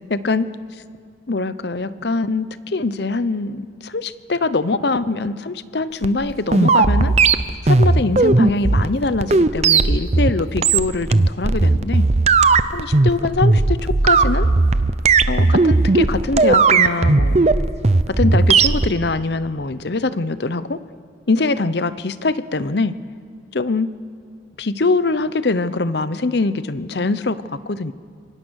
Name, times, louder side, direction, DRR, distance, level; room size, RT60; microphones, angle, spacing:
voice 1, 0.1-0.5 1.3-7.1 7.6-12.1 12.7-14.5 15.3-17.4 18.1-20.8 21.3-22.9 23.5-23.9 24.6-27.9, left 3 dB, 60° left, 14 dB, 0.8 m, -23 dB
sound 1, 6.0-18.9, right 3 dB, 35° right, 0.6 m, -16 dB
26.0 x 23.5 x 6.4 m, 2.1 s
head